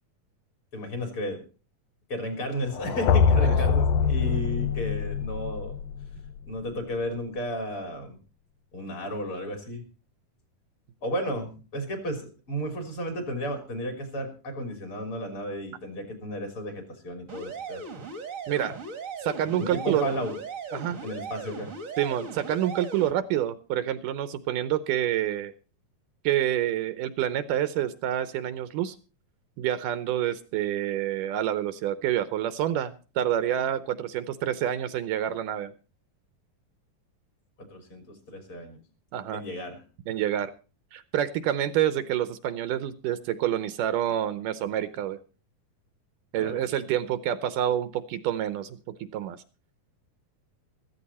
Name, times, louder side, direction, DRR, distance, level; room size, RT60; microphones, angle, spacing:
voice 1, 0.7-1.4 2.1-5.8 6.5-8.2 8.7-9.8 11.0-17.8 19.6-20.4 21.0-21.7 37.6-38.8 39.3-39.8 46.3-46.6, equal, 40° left, 5 dB, 3.8 m, -33 dB
sound 1, 2.7-6.7, left 6 dB, 85° left, 1.4 m, -24 dB
sound 2, 17.3-23.1, right 4 dB, 35° right, 1.4 m, -38 dB
voice 2, 18.5-18.8 19.2-20.1 20.7-21.0 22.0-25.5 26.2-29.0 29.6-35.7 39.1-39.4 40.1-40.5 40.9-45.2 46.3-49.4, right 11 dB, 75° right, 13 dB, 2.2 m, -28 dB
15.0 x 14.5 x 4.1 m, 0.35 s
omnidirectional pair, 4.0 m